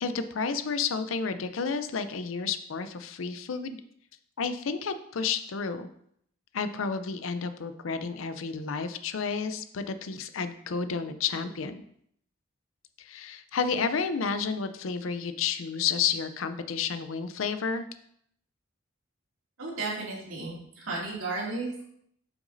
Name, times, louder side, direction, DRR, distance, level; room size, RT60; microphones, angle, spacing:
voice 1, 0.0-3.8 4.4-5.9 6.5-11.8 13.0-17.8, left 5 dB, 75° left, 11 dB, 0.5 m, -31 dB
voice 2, 19.6-21.8, right 3 dB, 85° right, -4 dB, 2.4 m, -34 dB
7.9 x 6.0 x 2.6 m, 0.69 s
head